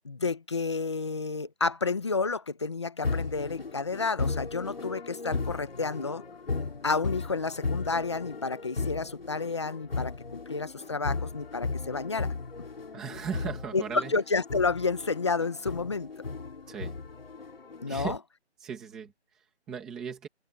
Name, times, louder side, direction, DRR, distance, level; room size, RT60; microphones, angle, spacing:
voice 1, 0.0-6.2 6.8-12.3 13.7-16.1 17.8-18.2, left 4 dB, 25° left, 1.3 m, -30 dB
sound 1, 3.0-18.2, left 4 dB, 55° left, 3.6 m, -36 dB
voice 2, 12.9-14.1 16.7-17.0 17.9-18.2 18.6-20.3, right 7 dB, ahead, 1.3 m, -38 dB
open air
hypercardioid pair, 175°, 34 cm